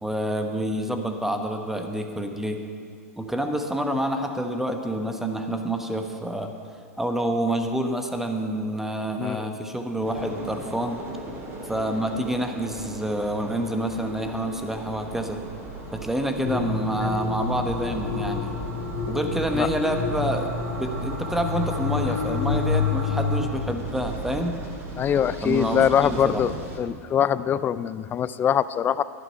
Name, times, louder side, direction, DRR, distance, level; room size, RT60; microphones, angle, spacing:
voice 1, 0.0-2.6 3.2-6.5 7.0-11.0 11.6-15.4 15.9-18.6 19.1-20.5 20.8-24.5 25.4-26.4, right 1 dB, 5° right, 5 dB, 1.1 m, -28 dB
voice 2, 9.2-9.6 17.0-17.1 19.6-19.7 25.0-29.0, left 9 dB, 25° left, 16 dB, 0.4 m, -23 dB
sound 1, 10.0-26.8, right 1 dB, 30° right, 2.9 m, -37 dB
sound 2, 14.8-23.4, right 2 dB, 85° right, 2.1 m, -41 dB
sound 3, 16.4-23.4, left 5 dB, 50° left, 1.4 m, -28 dB
12.0 x 11.0 x 5.5 m, 2.3 s
hypercardioid pair, 105°, 8 cm